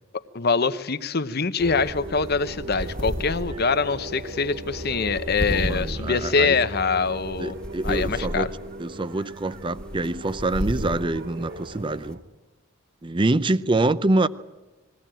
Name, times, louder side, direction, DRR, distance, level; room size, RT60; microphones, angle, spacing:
voice 1, 0.3-7.6 7.8-8.5, left 4 dB, 50° left, 12 dB, 0.9 m, -24 dB
sound 1, 1.6-12.1, equal, 5° left, 1.5 m, -34 dB
sound 2, 1.6-12.2, right 1 dB, 50° right, 2.8 m, -37 dB
sound 3, 2.5-3.1 3.4-4.2 4.7-7.2, right 1 dB, 65° right, 1.5 m, -46 dB
voice 2, 5.5-6.5 7.4-8.5 8.8-12.2 13.0-14.3, right 2 dB, 25° right, 15 dB, 0.6 m, -25 dB
21.5 x 17.0 x 9.0 m, 1.2 s
head